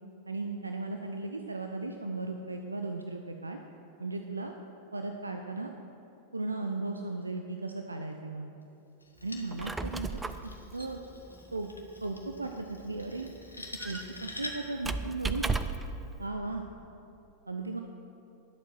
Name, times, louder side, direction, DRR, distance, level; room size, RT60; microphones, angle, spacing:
voice 1, 0.3-3.6 4.0-4.5 4.9-5.7 6.3-8.5 9.2-10.2 10.7-11.0 11.5-11.7 12.0-13.3 13.8-15.5 16.2-16.6 17.5-17.8, right 3 dB, 80° right, 4 dB, 0.5 m, -36 dB
sound 1, 9.0-14.8, left 1 dB, 80° left, 1.1 m, -46 dB
Squeak, 9.4-16.0, right 4 dB, 10° right, 0.4 m, -37 dB
11.0 x 7.4 x 6.2 m, 2.8 s
figure-of-eight pair, 90°, 0 cm